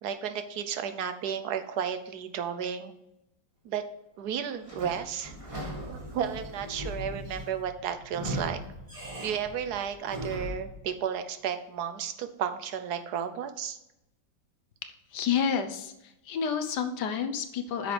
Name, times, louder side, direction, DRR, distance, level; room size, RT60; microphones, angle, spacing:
voice 1, 0.0-2.9 3.6-3.8 4.2-5.3 5.9-8.6 9.2-13.8, right 8 dB, 65° right, 9 dB, 1.2 m, -33 dB
Sliding door / Squeak, 4.6-10.7, equal, 15° right, 2.0 m, -39 dB
voice 2, 15.1-17.9, left 7 dB, 65° left, 8 dB, 1.3 m, -30 dB
9.1 x 6.5 x 3.3 m, 0.87 s
omnidirectional pair, 2.1 m